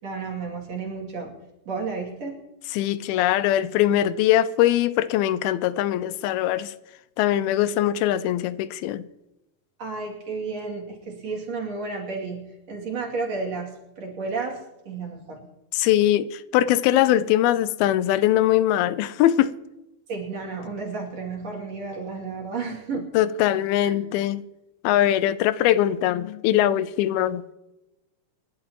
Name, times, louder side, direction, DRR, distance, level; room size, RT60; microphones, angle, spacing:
voice 1, 0.0-1.3 1.6-2.4 9.8-12.4 12.7-14.6 14.8-15.5 20.1-23.1 23.8-24.0, right 4 dB, 50° right, 3.4 m, -32 dB
voice 2, 2.7-6.7 7.2-9.0 15.7-19.5 23.1-24.4 24.8-27.4, left 12 dB, 85° left, 2.5 m, -21 dB
27.5 x 11.5 x 3.0 m
omnidirectional pair, 4.3 m